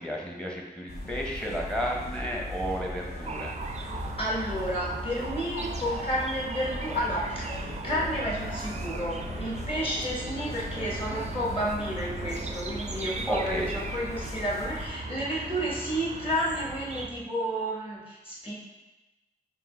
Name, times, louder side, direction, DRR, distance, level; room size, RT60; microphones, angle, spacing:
voice 1, 0.0-3.5 13.3-13.7, equal, 5° left, -1 dB, 0.8 m, -32 dB
sound 1, 0.9-14.9, left 1 dB, 90° left, 0.9 m, -39 dB
sound 2, 2.2-17.2, left 1 dB, 55° left, 0.9 m, -45 dB
sound 3, 3.2-17.1, right 4 dB, 45° right, 0.4 m, -39 dB
voice 2, 4.2-18.5, equal, 35° left, -5 dB, 1.4 m, -31 dB
5.3 x 2.3 x 3.4 m, 1.0 s
wide cardioid pair, 85°, 16 cm